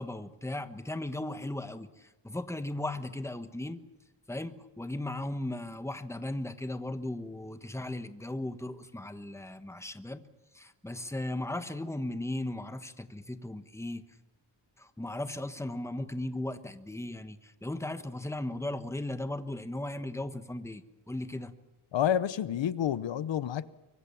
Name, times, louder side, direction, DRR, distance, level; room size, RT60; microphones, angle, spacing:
voice 1, 0.0-3.8 4.3-10.2 10.5-14.0 14.8-21.5, left 1 dB, 5° left, 1.3 m, -37 dB
voice 2, 21.9-23.7, left 10 dB, 85° left, 0.9 m, -29 dB
24.5 x 24.0 x 7.1 m
wide cardioid pair, 130°, 43 cm